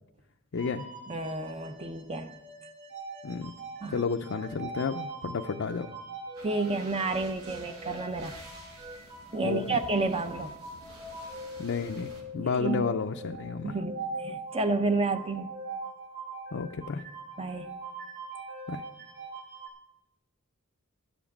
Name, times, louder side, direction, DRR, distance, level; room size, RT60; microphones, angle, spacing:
voice 1, 0.5-0.8 3.2-3.5 3.9-5.9 9.4-9.8 11.6-13.7 16.5-17.0 18.7-18.8, left 5 dB, 60° left, 0.5 m, -31 dB
sound 1, 0.6-19.7, right 2 dB, 50° right, 3.0 m, -42 dB
voice 2, 1.1-2.4 3.8-4.0 6.4-8.3 9.3-10.5 12.4-12.8 13.6-15.5 17.4-17.8, right 3 dB, 25° right, 0.6 m, -30 dB
sound 2, 6.4-12.2, right 1 dB, 85° right, 2.9 m, -50 dB
11.5 x 7.2 x 7.2 m
head